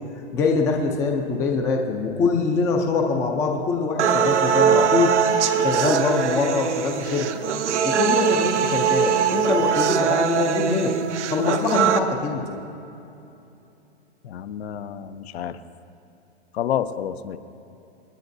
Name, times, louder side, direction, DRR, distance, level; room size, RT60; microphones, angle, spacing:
voice 1, 0.3-5.1 5.6-7.3 7.8-10.9 11.3-12.5, left 4 dB, 10° left, 2 dB, 0.4 m, -23 dB
sound 1, 4.0-12.0, right 7 dB, 85° right, 0.9 m, -21 dB
voice 2, 14.2-15.6 16.5-17.4, left 10 dB, 65° left, 11 dB, 0.7 m, -29 dB
27.5 x 9.7 x 2.6 m, 2.8 s
hypercardioid pair, 155°, 34 cm